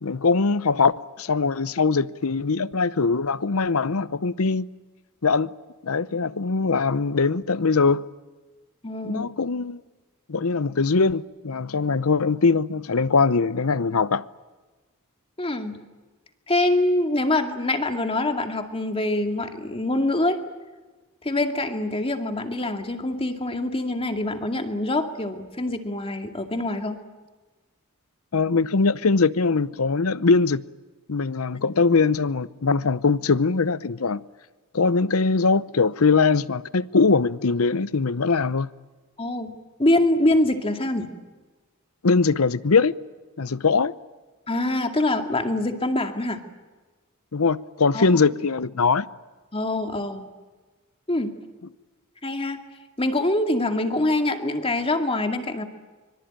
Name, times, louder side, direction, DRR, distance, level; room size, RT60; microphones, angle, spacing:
voice 1, 0.0-4.7 5.2-5.5 5.8-8.0 9.0-9.8 10.3-14.3 28.3-30.6 31.1-34.2 34.7-38.7 42.0-42.9 43.4-43.9 47.3-49.1, left 4 dB, 80° left, 0.8 m, -21 dB
voice 2, 8.8-9.3 15.4-15.8 16.5-20.4 21.2-27.0 39.2-39.5 39.8-41.1 44.5-46.4 47.9-48.1 49.5-50.3 51.1-51.3 52.2-52.6 53.0-55.7, left 1 dB, 25° left, 2.3 m, -24 dB
25.0 x 24.0 x 9.0 m
head